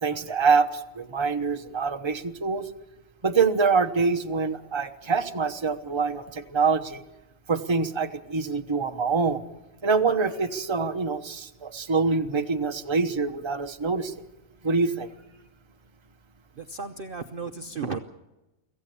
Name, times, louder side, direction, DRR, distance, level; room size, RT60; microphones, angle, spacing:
voice 1, 0.0-2.7 3.2-7.0 7.5-9.4 9.8-14.1 14.6-15.1, right 4 dB, 20° right, 6 dB, 1.0 m, -25 dB
voice 2, 16.6-18.0, right 4 dB, 45° right, 6 dB, 0.9 m, -34 dB
25.0 x 15.5 x 7.0 m, 0.98 s
omnidirectional pair, 1.5 m